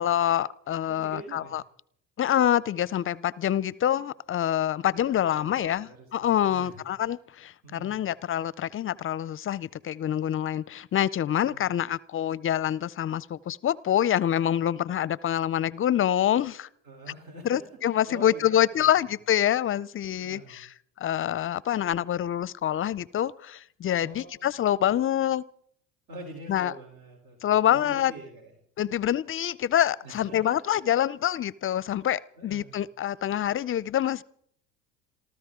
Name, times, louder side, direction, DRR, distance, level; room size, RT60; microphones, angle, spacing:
voice 1, 0.0-1.6 2.2-16.7 17.4-20.7 21.0-25.4 26.5-26.7 27.4-28.1 28.8-34.2, left 11 dB, 35° left, 22 dB, 0.5 m, -26 dB
voice 2, 0.9-1.6 5.2-6.9 7.6-8.0 11.4-11.8 16.8-19.0 20.2-20.6 24.0-24.5 26.1-28.6 30.0-30.8 32.4-32.8, right 2 dB, 65° right, 1 dB, 3.8 m, -45 dB
28.0 x 13.5 x 3.7 m, 0.67 s
hypercardioid pair, 70°, 40 cm